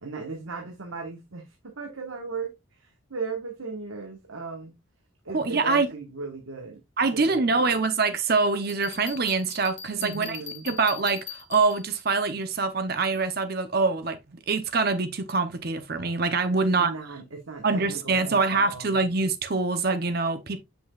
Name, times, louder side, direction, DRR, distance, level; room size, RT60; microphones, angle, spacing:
voice 1, 0.0-4.7 5.2-6.8 7.1-7.7 10.0-10.7 16.6-19.0, right 4 dB, 90° right, 1.3 m, -37 dB
voice 2, 5.3-5.9 7.0-10.4 10.6-16.9 17.6-20.6, right 4 dB, 50° right, 0.8 m, -25 dB
Bell, 8.7-12.0, left 9 dB, 60° left, 1.3 m, -41 dB
7.7 x 6.0 x 2.3 m
head